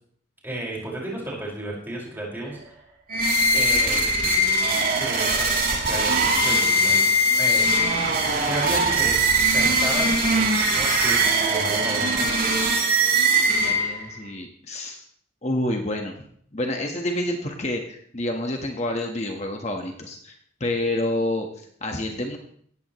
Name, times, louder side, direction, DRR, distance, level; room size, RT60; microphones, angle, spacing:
voice 1, 0.4-2.7 3.5-4.1 5.0-7.1 7.4-7.7 8.4-9.2 9.5-12.3, right 1 dB, 10° right, -3 dB, 5.4 m, -33 dB
sound 1, 3.1-14.1, right 1 dB, 45° right, 3.1 m, -21 dB
voice 2, 13.5-15.0 15.4-16.1 16.5-22.4, left 1 dB, 35° left, 2 dB, 1.4 m, -28 dB
17.5 x 14.5 x 3.1 m, 0.63 s
head